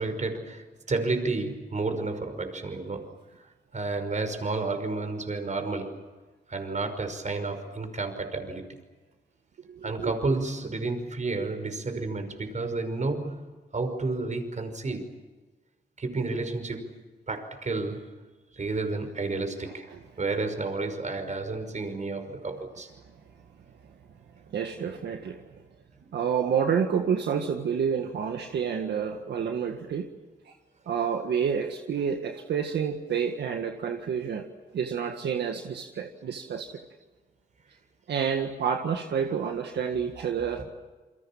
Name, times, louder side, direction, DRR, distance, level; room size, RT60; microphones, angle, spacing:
voice 1, 0.0-3.1 3.7-6.1 6.5-8.7 9.8-13.4 13.7-15.1 16.0-16.9 17.3-18.1 18.5-19.9 20.2-22.9 40.4-40.6, right 3 dB, 45° right, 7 dB, 5.6 m, -31 dB
voice 2, 9.7-10.1 19.7-20.0 24.5-25.4 26.1-30.1 30.9-34.5 34.7-36.7 38.1-40.6, right 7 dB, 85° right, 4 dB, 1.8 m, -29 dB
28.5 x 23.5 x 7.4 m, 1.3 s
cardioid pair, 60°, 17 cm